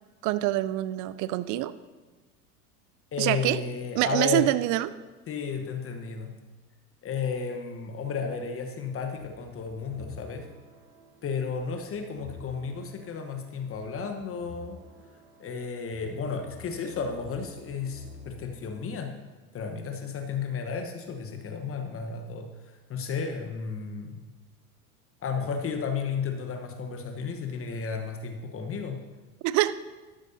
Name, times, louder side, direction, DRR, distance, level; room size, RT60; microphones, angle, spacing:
voice 1, 0.2-1.7 3.2-3.6 4.0-4.9 29.4-29.7, right 16 dB, 40° right, 15 dB, 0.6 m, -25 dB
voice 2, 3.1-4.5 5.3-6.3 7.0-10.4 11.2-14.8 15.4-19.1 19.5-24.2 25.2-29.0, left 5 dB, 30° left, 5 dB, 1.1 m, -33 dB
sound 1, 9.2-18.7, left 3 dB, 80° right, 2.3 m, -49 dB
12.5 x 11.5 x 2.8 m, 1.2 s
hypercardioid pair, 85°, 45 cm